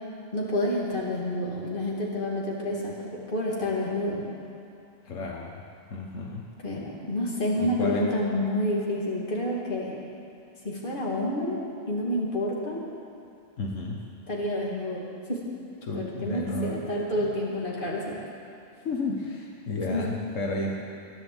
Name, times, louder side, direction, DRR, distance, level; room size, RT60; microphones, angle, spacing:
voice 1, 0.3-4.2 6.6-9.9 10.6-11.6 11.9-12.8 14.3-15.0 15.3-15.4 15.9-18.2 19.9-20.0, left 1 dB, 40° left, -4 dB, 2.8 m, -29 dB
voice 2, 5.0-5.6 5.9-6.5 7.6-8.1 13.6-14.1 15.8-16.8 17.1-17.3 18.8-20.8, left 2 dB, 85° left, -1 dB, 1.6 m, -32 dB
15.0 x 11.0 x 8.0 m, 2.6 s
omnidirectional pair, 1.3 m